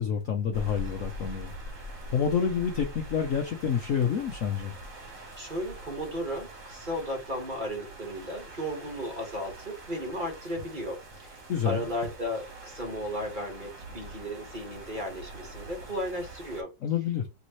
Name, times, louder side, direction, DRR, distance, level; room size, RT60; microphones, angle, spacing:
voice 1, 0.0-4.7 11.5-11.8 16.8-17.3, left 7 dB, 60° left, 0.9 m, -28 dB
sound 1, 0.5-16.6, right 1 dB, 45° right, 1.8 m, -44 dB
voice 2, 5.4-16.7, equal, 30° right, 1.5 m, -35 dB
4.2 x 3.5 x 3.1 m
omnidirectional pair, 2.0 m